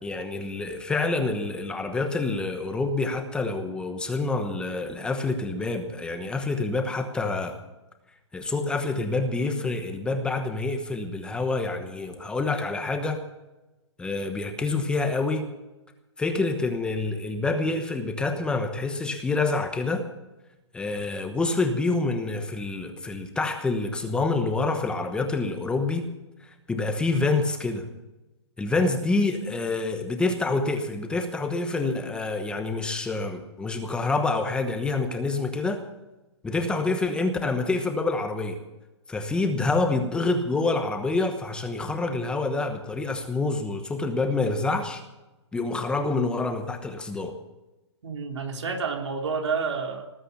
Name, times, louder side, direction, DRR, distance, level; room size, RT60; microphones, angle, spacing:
voice 1, 0.0-7.6 8.3-13.2 14.0-15.5 16.2-20.1 20.7-26.1 26.4-27.9 28.6-35.8 36.4-38.6 39.1-45.0 45.5-47.3, left 3 dB, 5° left, 6 dB, 1.0 m, -27 dB
voice 2, 48.0-50.1, right 5 dB, 80° right, 2 dB, 3.8 m, -29 dB
19.5 x 8.8 x 6.9 m, 1.0 s
hypercardioid pair, 155°, 15 cm